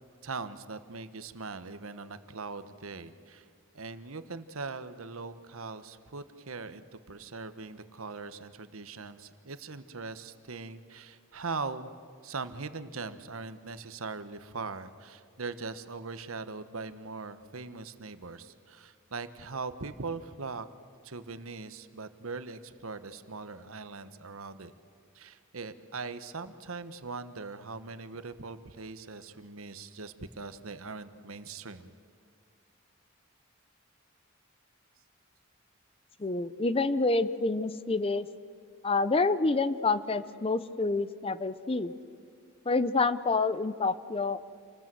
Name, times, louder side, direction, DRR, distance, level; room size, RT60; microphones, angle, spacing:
voice 1, 0.2-3.5 3.7-11.9 12.2-20.7 21.0-24.7 25.1-31.9, right 4 dB, 75° right, 12 dB, 1.2 m, -41 dB
voice 2, 36.2-38.3 38.8-41.9 42.7-44.4, left 3 dB, 25° left, 15 dB, 0.6 m, -28 dB
28.0 x 20.0 x 7.7 m, 2.2 s
head